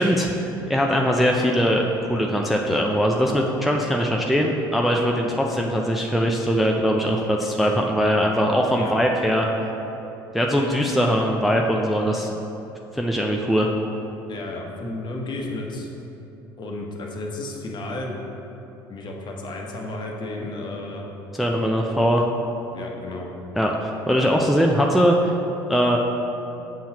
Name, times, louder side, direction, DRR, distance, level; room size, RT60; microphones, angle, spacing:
voice 1, 0.0-9.5 10.3-12.4 12.9-13.7 21.4-22.2 23.6-25.3 25.7-26.0, equal, ahead, 0 dB, 0.5 m, -21 dB
voice 2, 14.3-15.9 16.6-18.1 18.9-21.0 22.7-23.3, left 2 dB, 40° left, 0 dB, 1.1 m, -33 dB
7.5 x 5.5 x 2.9 m, 2.9 s
hypercardioid pair, 65°, 12 cm